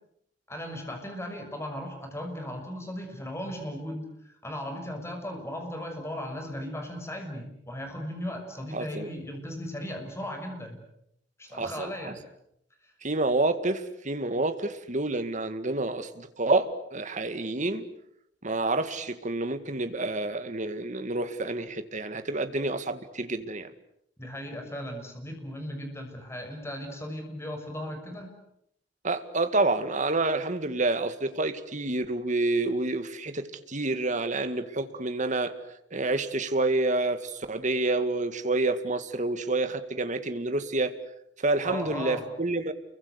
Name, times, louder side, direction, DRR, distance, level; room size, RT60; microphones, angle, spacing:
voice 1, 0.5-10.8 11.4-12.2 12.8-12.9 24.2-28.3 41.6-42.2, left 1 dB, 15° left, 6.3 m, -37 dB
voice 2, 8.7-9.1 11.5-12.1 13.0-17.9 18.4-23.7 29.0-35.5 35.9-41.0 41.4-42.7, right 2 dB, 45° right, 2.0 m, -28 dB
30.0 x 23.5 x 8.2 m
head